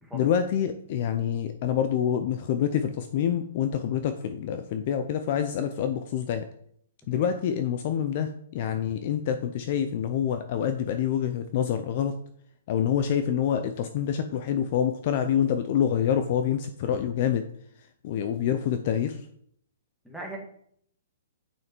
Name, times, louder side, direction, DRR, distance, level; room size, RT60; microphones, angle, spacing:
voice 1, 0.1-6.5 7.1-12.2 12.7-17.5 18.0-19.2, left 9 dB, 35° left, 9 dB, 0.5 m, -26 dB
voice 2, 20.0-20.4, right 2 dB, ahead, -3 dB, 1.6 m, -39 dB
8.3 x 6.4 x 4.5 m, 0.67 s
hypercardioid pair, 170°, 0 cm